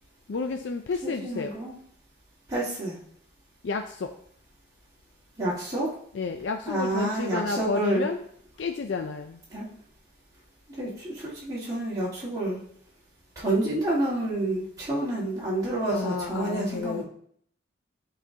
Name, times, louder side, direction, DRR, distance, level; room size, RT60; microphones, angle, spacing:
voice 1, 0.3-1.5 3.6-4.1 6.1-8.2 8.6-9.4 15.9-17.0, left 4 dB, 70° left, 6 dB, 0.4 m, -31 dB
voice 2, 1.0-1.8 2.5-3.0 5.4-5.9 6.7-8.0 9.5-9.7 10.7-12.6 13.3-17.0, right 1 dB, 20° right, -8 dB, 1.7 m, -29 dB
11.0 x 3.8 x 2.8 m, 0.64 s
head